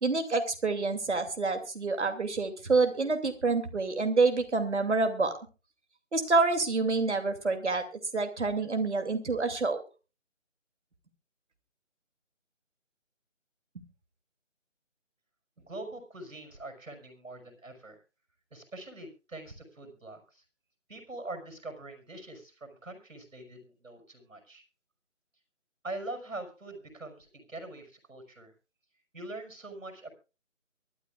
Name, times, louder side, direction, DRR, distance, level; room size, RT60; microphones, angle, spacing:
voice 1, 0.0-5.3 6.1-7.8 8.1-9.8, right 3 dB, 60° right, 6 dB, 2.9 m, -27 dB
voice 2, 15.6-18.0 18.5-20.4 20.9-24.6 25.8-28.5 29.1-30.1, right 2 dB, 85° right, 6 dB, 5.9 m, -43 dB
23.5 x 12.5 x 2.4 m, 0.31 s
figure-of-eight pair, 165°, 38 cm